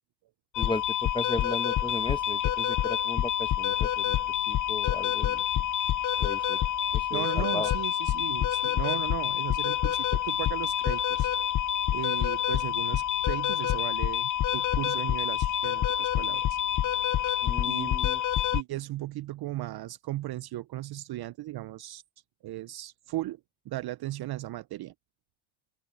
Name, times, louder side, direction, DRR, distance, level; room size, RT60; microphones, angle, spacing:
sound 1, 0.5-18.6, left 11 dB, 40° left, 0.7 m, -27 dB
voice 1, 0.6-4.2 4.5-5.4 6.2-6.6 6.9-7.7 17.4-18.2, left 2 dB, 10° left, 1.5 m, -36 dB
voice 2, 7.1-11.3 11.9-16.6 17.6-17.9 18.5-22.0 22.4-23.4 23.7-24.9, right 15 dB, 50° right, 0.7 m, -36 dB
open air
supercardioid pair, 80°, 50 cm